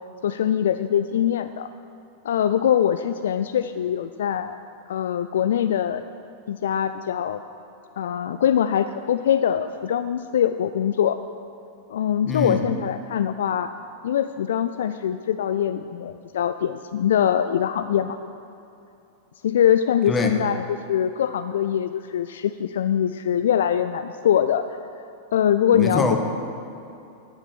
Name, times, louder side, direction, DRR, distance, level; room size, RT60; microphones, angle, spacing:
voice 1, 0.2-1.7 2.2-4.6 4.9-6.0 6.5-7.4 8.0-11.2 11.9-13.7 14.0-18.2 19.4-24.6 25.3-26.2, left 9 dB, 60° left, 11 dB, 0.3 m, -23 dB
voice 2, 12.2-12.6 20.1-20.3 25.7-26.2, left 3 dB, 20° left, 4 dB, 1.4 m, -23 dB
12.5 x 8.8 x 6.1 m, 2.7 s
figure-of-eight pair, 90°, 0 cm